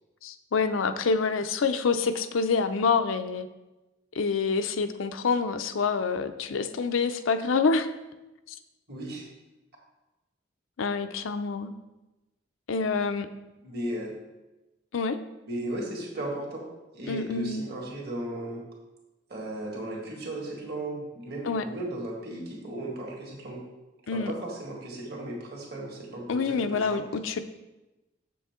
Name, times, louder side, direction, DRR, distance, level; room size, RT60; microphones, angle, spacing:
voice 1, 0.2-3.5 4.1-7.9 8.5-8.6 10.8-11.7 12.7-13.3 14.9-15.2 17.1-17.6 21.4-21.6 24.1-24.3 26.3-27.4, left 4 dB, 90° left, 9 dB, 0.5 m, -27 dB
voice 2, 8.9-9.2 13.6-14.1 15.5-16.6 16.9-18.6 19.3-23.6 24.1-27.0, right 1 dB, 55° right, -2 dB, 2.0 m, -36 dB
7.4 x 6.9 x 3.7 m, 1.0 s
head